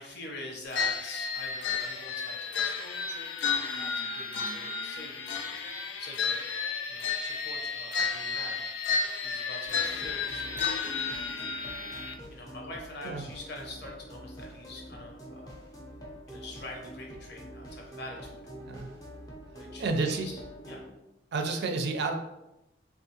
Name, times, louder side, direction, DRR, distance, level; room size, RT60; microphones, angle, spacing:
voice 1, 0.0-5.5 6.0-8.6 9.2-10.7 11.8-15.5 16.3-18.4 19.5-20.3 20.7-20.8, left 2 dB, 65° left, 0 dB, 0.8 m, -45 dB
sound 1, 0.7-12.1, left 5 dB, 90° left, 0.4 m, -32 dB
sound 2, 9.7-20.9, equal, 20° left, 0.6 m, -46 dB
voice 2, 18.6-18.9 19.8-20.3 21.3-22.1, right 3 dB, 65° right, 5 dB, 0.4 m, -30 dB
3.5 x 2.4 x 2.8 m, 0.93 s
head